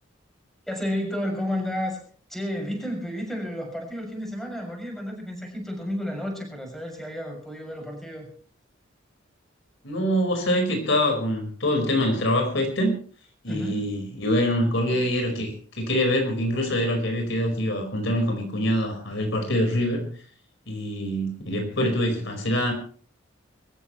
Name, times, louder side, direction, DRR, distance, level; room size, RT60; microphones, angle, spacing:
voice 1, 0.7-2.0 2.3-8.3 13.5-13.9, equal, ahead, 1 dB, 6.6 m, -31 dB
voice 2, 9.8-12.9 13.4-20.1 20.7-22.7, equal, 65° left, 4 dB, 5.0 m, -25 dB
24.5 x 14.5 x 3.2 m, 0.43 s
head